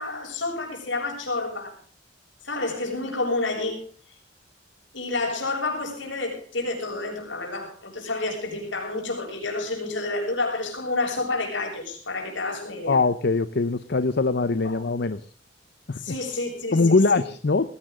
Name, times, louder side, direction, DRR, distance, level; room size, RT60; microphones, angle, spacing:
voice 1, 0.0-1.7 2.4-3.8 4.9-13.0 14.6-14.8 16.0-17.2, left 2 dB, 75° left, 1 dB, 7.0 m, -29 dB
voice 2, 12.9-15.2 15.9-16.0 16.7-17.7, left 3 dB, 60° left, 13 dB, 0.7 m, -22 dB
20.0 x 16.5 x 3.7 m, 0.42 s
head